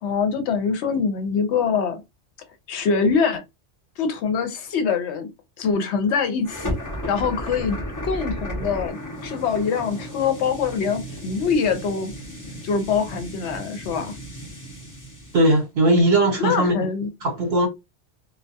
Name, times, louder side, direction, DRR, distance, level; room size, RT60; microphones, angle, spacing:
voice 1, 0.0-2.0 2.7-3.4 4.0-5.3 5.6-6.8 7.1-7.8 8.0-9.0 9.2-12.1 12.6-14.1 16.4-17.1, left 5 dB, 70° left, 0.8 m, -24 dB
sound 1, 6.4-15.6, equal, 25° left, 0.5 m, -34 dB
voice 2, 15.3-16.7 17.2-17.7, right 1 dB, 60° right, 1.0 m, -18 dB
2.3 x 2.2 x 2.6 m
omnidirectional pair, 1.2 m